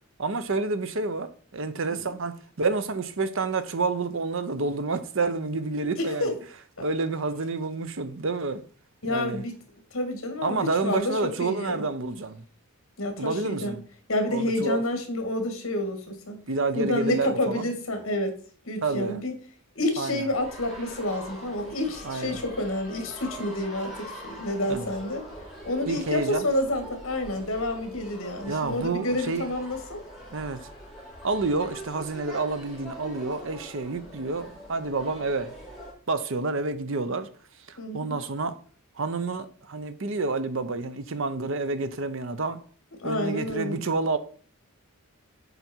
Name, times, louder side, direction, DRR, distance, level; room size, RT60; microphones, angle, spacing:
voice 1, 0.2-6.3 6.8-8.6 9.1-9.4 10.4-12.4 13.2-13.8 14.3-14.8 16.5-17.7 18.8-19.2 20.0-20.3 22.0-22.4 24.7-24.9 25.9-26.5 28.5-29.5 30.3-30.6 31.2-35.5 36.1-37.3 37.7-38.6 39.0-42.6 43.0-44.2, right 3 dB, 60° right, 0.7 m, -29 dB
voice 2, 6.0-6.3 9.0-9.5 9.9-11.9 13.0-13.7 14.1-16.4 16.7-18.4 18.7-19.3 19.8-25.2 25.7-30.0 37.8-38.2 43.0-43.8, left 1 dB, 65° left, 2.0 m, -29 dB
sound 1, 20.3-35.9, equal, ahead, 3.4 m, -43 dB
8.1 x 5.3 x 4.5 m
head